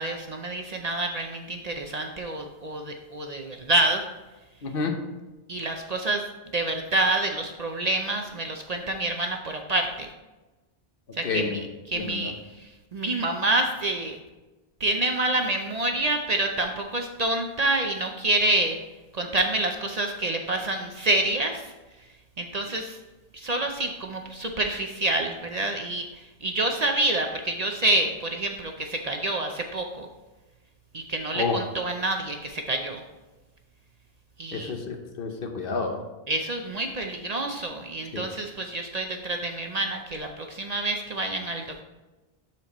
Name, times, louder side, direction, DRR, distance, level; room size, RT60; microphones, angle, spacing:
voice 1, 0.0-4.0 5.5-6.2 6.5-10.1 11.1-14.2 14.8-18.8 19.1-21.7 22.4-23.0 23.3-30.1 30.9-33.0 34.4-34.7 36.3-41.8, right 2 dB, 50° right, 3 dB, 0.6 m, -27 dB
voice 2, 4.6-5.0 11.2-11.6 12.0-12.3 31.3-31.6 34.5-36.0 38.1-38.2, left 4 dB, 60° left, 4 dB, 1.0 m, -29 dB
12.0 x 4.5 x 3.0 m, 1.2 s
omnidirectional pair, 1.1 m